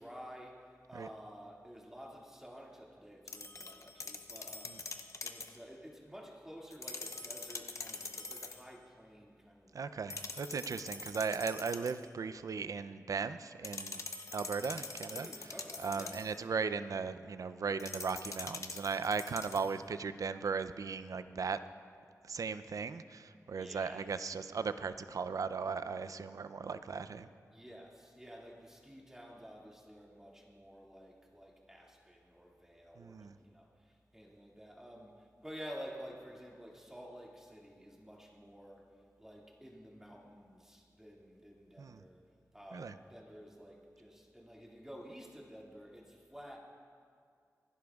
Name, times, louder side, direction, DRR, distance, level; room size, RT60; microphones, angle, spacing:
voice 1, 0.0-10.1 15.1-16.2 23.6-24.1 27.5-38.9 39.2-42.2 42.5-46.6, equal, 10° right, -3 dB, 2.2 m, -51 dB
sound 1, 3.3-5.6 6.7-8.7 10.1-12.1 13.6-16.4 17.8-19.8, left 3 dB, 60° left, 0.7 m, -44 dB
voice 2, 9.7-14.0 14.3-15.5 15.8-21.6 22.2-27.3 33.0-33.3 41.8-42.0 42.7-42.9, right 5 dB, 75° right, 12 dB, 0.4 m, -37 dB
25.5 x 11.5 x 2.4 m, 2.2 s
wide cardioid pair, 80°, 6 cm